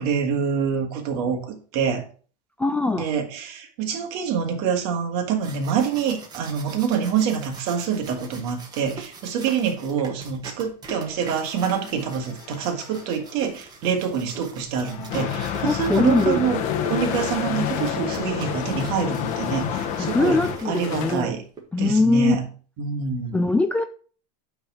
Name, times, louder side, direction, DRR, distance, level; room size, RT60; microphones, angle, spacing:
voice 1, 0.0-2.0 3.0-16.6 16.9-21.4 21.8-22.4 22.8-23.4, right 7 dB, 55° right, 1.9 m, -26 dB
voice 2, 2.6-3.1 15.6-16.4 20.0-21.3 21.7-22.4 23.3-23.8, left 3 dB, 5° left, 0.3 m, -21 dB
sound 1, 5.2-21.6, right 4 dB, 20° right, 1.6 m, -42 dB
sound 2, 11.1-13.3 14.2-14.3 14.7-21.1, left 9 dB, 65° left, 1.0 m, -35 dB
sound 3, 15.1-20.6, left 9 dB, 40° left, 1.0 m, -29 dB
8.7 x 3.6 x 6.0 m
supercardioid pair, 145°, 20 cm